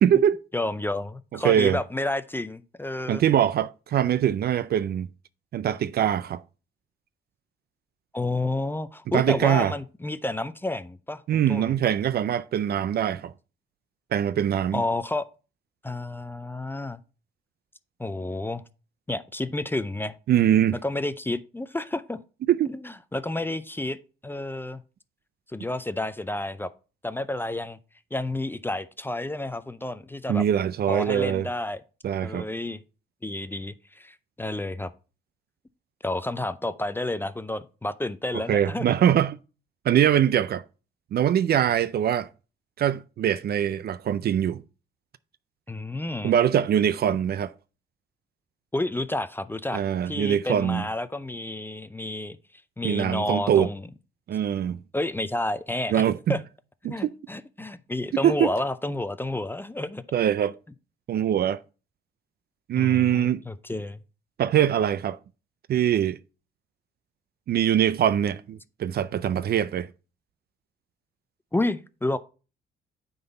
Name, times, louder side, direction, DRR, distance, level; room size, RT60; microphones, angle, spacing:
voice 1, 0.0-0.4 1.4-1.8 3.1-5.1 5.5-6.4 9.1-9.7 11.3-13.3 14.1-14.8 20.3-20.8 22.5-22.7 30.3-31.5 32.0-32.5 38.3-39.4 39.9-40.6 41.1-42.3 42.8-44.6 46.2-47.5 49.7-50.8 52.8-53.7 54.3-54.8 55.9-56.4 56.8-57.1 58.2-58.5 60.1-60.5 61.1-61.6 62.7-63.4 64.4-65.2 65.7-66.2 67.5-69.9, right 10 dB, 55° right, 0.4 m, -23 dB
voice 2, 0.5-3.2 8.1-11.7 14.7-15.3 15.8-17.0 18.0-18.6 19.1-20.2 20.8-22.2 22.7-24.0 24.2-24.8 25.5-26.7 27.0-27.8 28.1-30.4 30.9-31.8 32.2-32.8 33.2-34.9 36.0-38.9 45.7-46.3 48.7-52.4 52.8-53.9 54.9-56.0 56.3-56.4 56.8-60.0 62.8-64.0 71.5-72.2, left 2 dB, 10° left, 0.5 m, -30 dB
9.2 x 4.0 x 4.0 m
cardioid pair, 90°, 20 cm